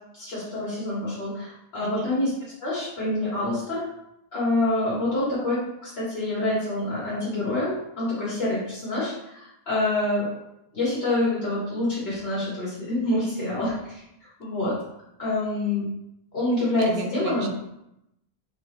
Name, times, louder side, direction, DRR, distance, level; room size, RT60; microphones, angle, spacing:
voice 1, 0.1-2.3 2.6-3.8 4.3-10.2 10.7-14.0 14.4-14.7 15.2-15.9 16.3-17.5, left 2 dB, 85° left, -9 dB, 2.0 m, -26 dB
voice 2, 16.8-17.5, right 4 dB, 75° right, 3 dB, 0.9 m, -34 dB
5.1 x 3.0 x 3.2 m, 0.84 s
omnidirectional pair, 1.0 m